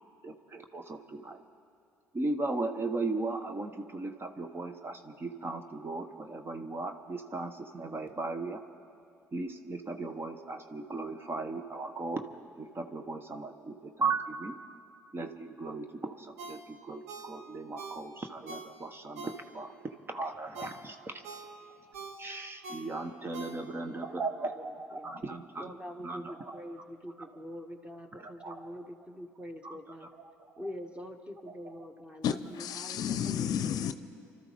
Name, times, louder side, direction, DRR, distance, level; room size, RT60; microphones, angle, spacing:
voice 1, 0.2-1.4 2.1-8.6 9.3-12.2 12.6-14.6 15.1-19.7 20.1-21.2 22.2-25.7 26.0-26.6 27.2-27.3 28.2-28.7 29.6-30.7 31.5-31.9, right 3 dB, 30° right, 7 dB, 1.2 m, -37 dB
Ringtone, 16.4-19.8 20.2-24.0 24.4-24.5, right 3 dB, 80° right, 1.2 m, -46 dB
voice 2, 23.5-24.2 25.0-25.1 25.6-30.1 30.6-32.3 32.8-33.5, equal, 15° right, 4 dB, 2.0 m, -44 dB
voice 3, 32.2-33.9, left 9 dB, 60° left, 11 dB, 0.6 m, -31 dB
28.5 x 13.0 x 3.6 m, 2.5 s
hypercardioid pair, 50°, 7 cm